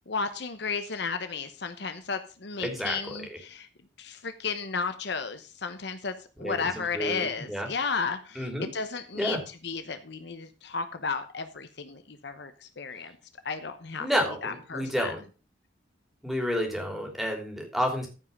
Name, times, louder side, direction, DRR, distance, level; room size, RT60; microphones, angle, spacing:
voice 1, 0.1-3.7 4.0-13.1 13.4-14.1 14.4-15.1, left 5 dB, 60° left, 9 dB, 1.0 m, -33 dB
voice 2, 2.6-3.2 6.4-7.7 8.3-8.7 9.1-9.4 14.0-15.2 16.2-18.1, equal, ahead, 1 dB, 3.1 m, -30 dB
14.5 x 5.5 x 5.4 m, 0.34 s
head